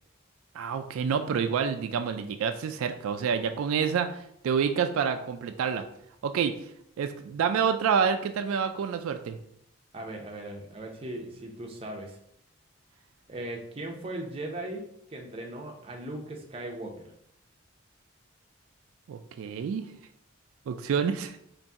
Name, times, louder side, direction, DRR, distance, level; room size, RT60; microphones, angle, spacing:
voice 1, 0.5-5.8 6.2-6.5 7.0-9.4 19.1-19.8 20.7-21.4, right 6 dB, 80° right, 7 dB, 0.3 m, -28 dB
voice 2, 9.9-12.2 13.3-17.1, right 1 dB, 25° right, 1 dB, 0.5 m, -38 dB
4.0 x 2.5 x 3.5 m, 0.71 s
head